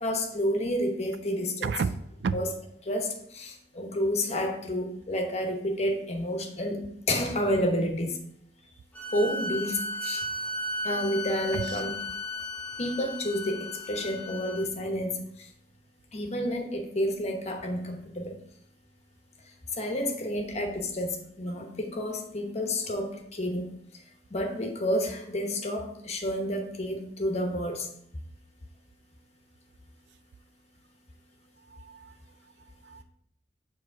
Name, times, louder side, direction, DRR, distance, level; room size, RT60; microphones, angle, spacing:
voice 1, 0.0-1.7 2.3-2.5 2.8-8.2 9.1-10.3 10.8-11.9 12.8-15.5 16.1-18.4 19.8-23.7 24.3-27.9, equal, 40° left, 3 dB, 1.0 m, -30 dB
voice 2, 1.6-2.4 11.5-11.8 31.7-32.1 32.8-33.0, right 5 dB, 75° right, 14 dB, 0.3 m, -32 dB
sound 1, 8.9-14.6, left 1 dB, 10° left, 0.7 m, -35 dB
7.2 x 3.1 x 4.6 m, 0.74 s
head